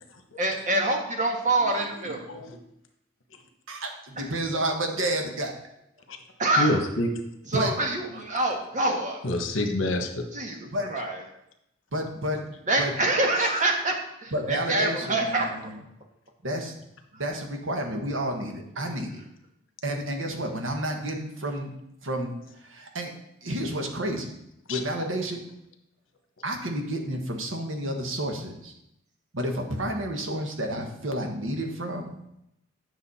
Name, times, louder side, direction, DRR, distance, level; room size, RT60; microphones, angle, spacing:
voice 1, 0.4-2.2 4.2-4.3 6.4-6.7 7.5-9.2 10.3-10.6 10.9-11.2 12.7-13.9 14.2-15.5, right 2 dB, 40° right, 2 dB, 1.5 m, -25 dB
voice 2, 1.6-1.9 2.2-2.6 6.6-7.1 8.1-8.2 9.2-10.2 13.4-13.5 24.7-24.8, left 1 dB, 75° left, 5 dB, 1.2 m, -28 dB
voice 3, 3.7-5.5 7.5-7.7 10.7-10.9 11.9-12.4 12.8-12.9 14.3-15.8 16.4-16.7 17.1-19.2 19.8-21.7 22.0-22.3 22.6-23.1 23.4-24.3 24.7-25.4 26.4-28.7 29.3-32.2, right 1 dB, 75° right, 3 dB, 1.4 m, -30 dB
9.2 x 6.4 x 4.2 m, 0.80 s
head